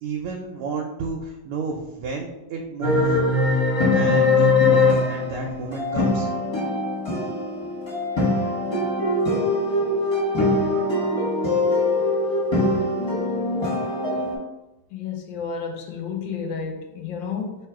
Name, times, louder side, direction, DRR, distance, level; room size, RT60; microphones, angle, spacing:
voice 1, 0.0-3.2 3.9-6.3, right 4 dB, 90° right, 0 dB, 1.5 m, -31 dB
sound 1, 2.8-14.4, left 2 dB, 15° left, 1.0 m, -22 dB
voice 2, 14.9-17.7, left 6 dB, 75° left, 3 dB, 1.2 m, -31 dB
3.5 x 3.0 x 4.7 m, 1.0 s
omnidirectional pair, 2.4 m